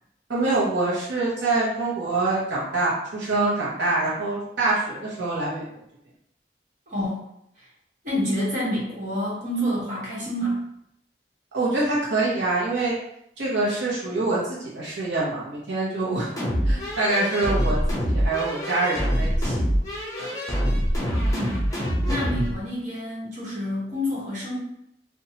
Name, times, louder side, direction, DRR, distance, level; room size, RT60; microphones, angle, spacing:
voice 1, 0.3-5.6 11.5-13.0 13.4-16.3 16.7-17.8 18.0-19.6 20.2-20.3, right 2 dB, 90° right, -6 dB, 0.7 m, -25 dB
voice 2, 6.9-7.3 7.6-7.7 8.0-10.6 21.3-21.6 21.9-24.6, equal, 45° right, -7 dB, 1.1 m, -28 dB
sound 1, 16.4-22.5, equal, 20° left, 0.7 m, -25 dB
2.8 x 2.2 x 2.8 m, 0.76 s
head